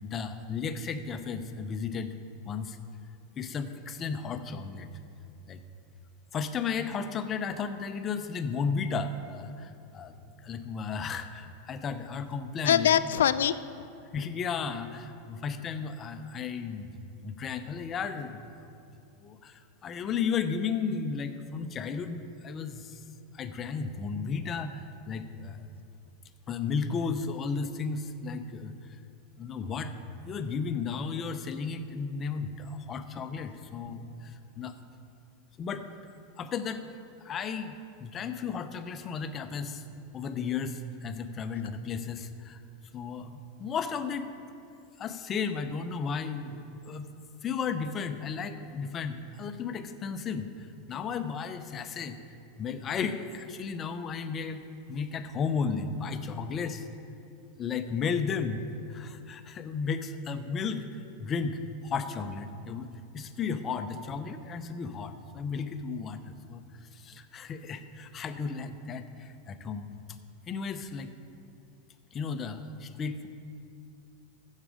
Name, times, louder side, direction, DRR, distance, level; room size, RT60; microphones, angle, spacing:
voice 1, 0.0-2.2 2.4-2.8 3.4-4.9 5.5-5.6 6.3-10.1 10.4-12.9 14.1-18.4 19.2-23.0 23.3-25.7 26.5-28.7 29.4-29.9 30.3-34.7 35.6-35.9 36.4-36.8 37.2-39.8 40.1-42.6 42.9-44.4 45.0-47.1 47.4-52.2 52.6-54.6 54.9-56.9 57.6-58.6 58.9-60.9 61.2-70.0 70.5-71.1 72.1-73.3, left 5 dB, 30° left, 9 dB, 0.8 m, -34 dB
voice 2, 12.6-13.6, left 10 dB, 75° left, 14 dB, 0.4 m, -23 dB
15.0 x 6.5 x 5.0 m, 2.6 s
hypercardioid pair, 95°, 0 cm